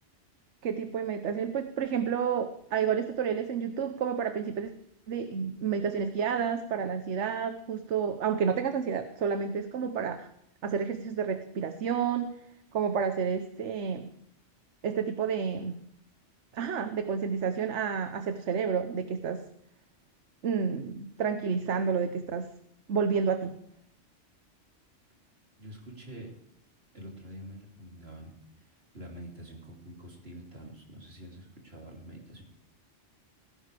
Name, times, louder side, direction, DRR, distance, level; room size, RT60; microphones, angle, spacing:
voice 1, 0.6-4.7 5.1-10.3 10.6-12.3 12.7-14.1 14.8-15.8 16.5-19.4 20.4-22.5 22.9-23.6, right 6 dB, 70° right, 8 dB, 1.2 m, -30 dB
voice 2, 25.6-26.3 26.9-32.4, right 1 dB, 55° right, -1 dB, 3.4 m, -46 dB
17.5 x 16.0 x 3.4 m, 0.73 s
omnidirectional pair, 1.2 m